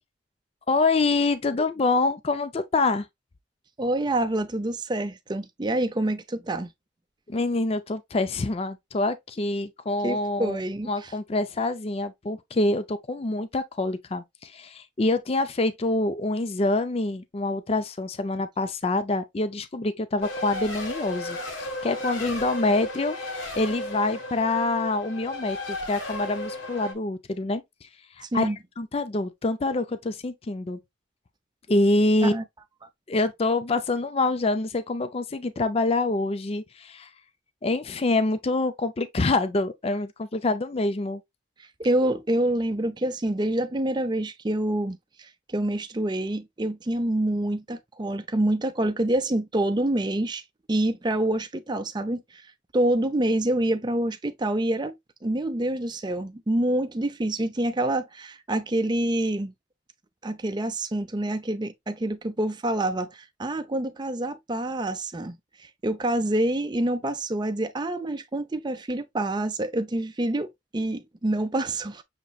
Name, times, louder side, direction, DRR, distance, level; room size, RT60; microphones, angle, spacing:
voice 1, 0.7-3.1 7.3-10.6 10.9-23.2 23.5-27.9 28.2-28.5 28.8-30.8 31.7-32.3 33.1-37.1 37.6-41.2, left 2 dB, 30° left, 0.4 m, -26 dB
voice 2, 3.8-6.7 10.0-11.1 28.3-28.6 32.2-32.4 41.8-50.4 50.7-52.4 52.7-55.0 55.2-59.5 60.2-72.0, right 1 dB, 20° right, 0.5 m, -27 dB
Race car auto racing, 20.2-26.9, left 1 dB, 85° left, 1.4 m, -34 dB
6.5 x 3.0 x 2.3 m
head